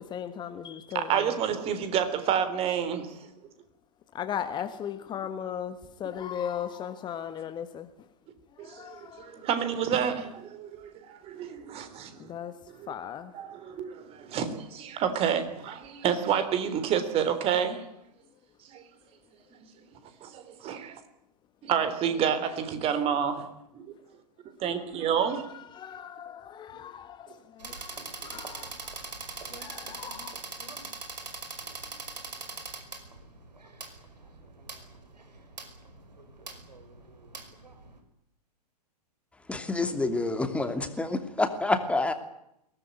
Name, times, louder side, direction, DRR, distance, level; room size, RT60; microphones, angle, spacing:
voice 1, 0.0-1.4 4.1-7.9 8.6-9.5 11.8-11.9 12.2-13.4 24.7-30.3, left 9 dB, 20° left, 1.5 m, -38 dB
voice 2, 0.9-3.2 8.6-12.1 12.8-12.9 13.3-17.8 18.7-18.8 20.2-21.0 21.6-23.5 23.7-23.9 24.6-25.5, right 8 dB, 30° right, 3.8 m, -29 dB
sound 1, 27.6-38.0, right 3 dB, 80° right, 5.3 m, -42 dB
voice 3, 39.5-42.1, left 2 dB, 5° left, 2.8 m, -28 dB
23.0 x 18.5 x 9.5 m
figure-of-eight pair, 110°, 21 cm